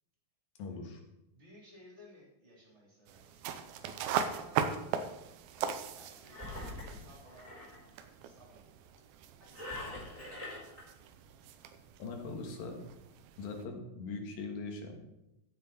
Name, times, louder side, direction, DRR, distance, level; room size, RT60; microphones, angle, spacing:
voice 1, 0.6-1.0 12.0-12.8 13.4-15.0, left 3 dB, 75° left, 3 dB, 3.3 m, -41 dB
voice 2, 1.3-3.5 4.1-4.8 5.5-6.4 6.8-9.0 9.4-10.5, equal, 20° right, -3 dB, 3.4 m, -59 dB
sound 1, 3.1-13.6, right 7 dB, 80° right, 2.6 m, -40 dB
Engine, 6.3-7.8 9.5-10.8, left 1 dB, 10° left, 4.2 m, -43 dB
15.5 x 7.0 x 4.3 m, 0.89 s
omnidirectional pair, 4.2 m